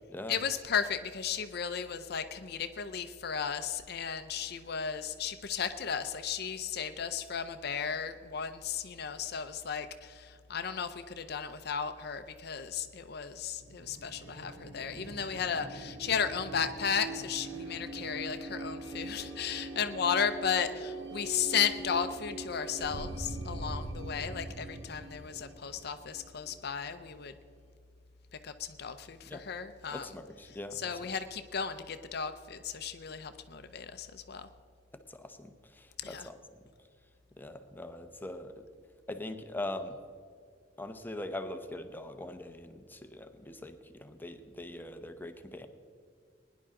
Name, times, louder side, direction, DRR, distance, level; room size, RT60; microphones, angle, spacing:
voice 1, 0.3-27.3 28.4-30.1 30.7-34.5 36.0-36.3, left 7 dB, 60° left, 9 dB, 0.6 m, -35 dB
sound 1, 13.6-27.1, right 2 dB, 85° right, 1.7 m, -42 dB
voice 2, 29.9-30.9 35.1-35.5 35.7-36.3 37.4-38.6 39.1-40.0 40.8-45.7, left 1 dB, 10° left, 7 dB, 0.9 m, -42 dB
20.5 x 10.5 x 3.7 m, 2.2 s
head